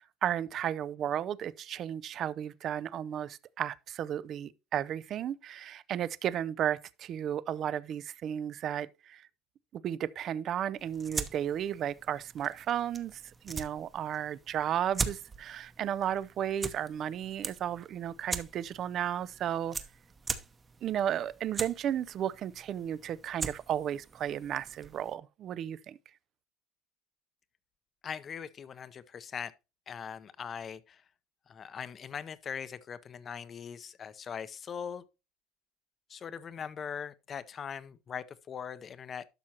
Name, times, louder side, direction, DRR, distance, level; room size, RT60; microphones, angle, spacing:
voice 1, 0.0-9.3 9.8-19.8 20.8-26.0, right 10 dB, 45° right, 0.5 m, -34 dB
sound 1, 10.8-25.1, right 4 dB, 20° right, 0.9 m, -41 dB
voice 2, 28.0-29.5 29.9-31.0 31.5-35.0 36.1-39.2, left 7 dB, 30° left, 0.7 m, -41 dB
12.0 x 6.2 x 2.9 m
supercardioid pair, 125°, 0 cm